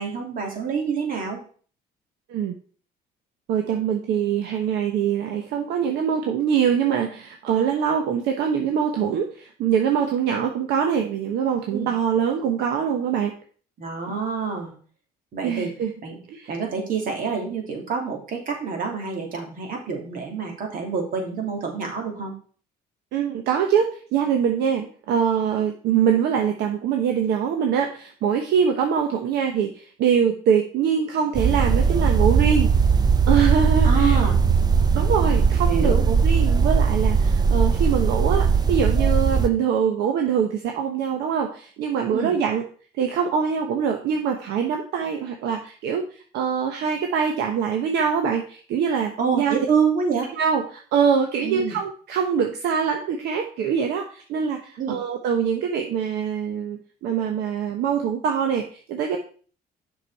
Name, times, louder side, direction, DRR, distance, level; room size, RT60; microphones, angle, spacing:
voice 1, 0.0-1.4 11.7-11.9 13.8-14.7 15.3-15.7 16.0-16.2 16.5-22.3 33.8-34.4 35.6-36.0 42.1-42.3 49.2-50.3 51.4-51.8 54.8-55.0, right 6 dB, 55° right, 2 dB, 2.7 m, -27 dB
voice 2, 3.5-13.3 15.4-15.9 16.3-16.5 23.1-32.7 33.3-34.2 34.9-42.6 42.9-49.5 50.4-59.2, right 7 dB, 80° right, 3 dB, 1.0 m, -23 dB
sound 1, 31.4-39.5, right 5 dB, 25° right, 0.7 m, -19 dB
6.9 x 6.0 x 4.7 m, 0.43 s
cardioid pair, 110°, 17 cm